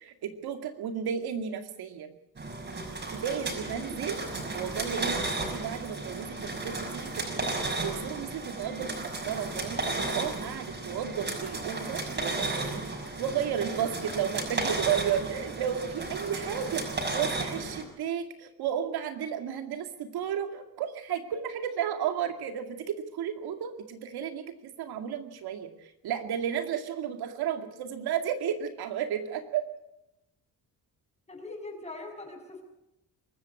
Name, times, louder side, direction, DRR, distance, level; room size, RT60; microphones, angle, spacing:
voice 1, 0.0-2.1 3.1-4.2 4.5-7.5 7.8-29.6, right 8 dB, 85° right, 6 dB, 2.4 m, -33 dB
sound 1, 2.4-17.8, right 2 dB, 30° right, 6.3 m, -34 dB
voice 2, 31.3-32.6, left 2 dB, 15° left, 3 dB, 6.5 m, -41 dB
24.0 x 14.0 x 8.5 m, 0.87 s
cardioid pair, 115°, 37 cm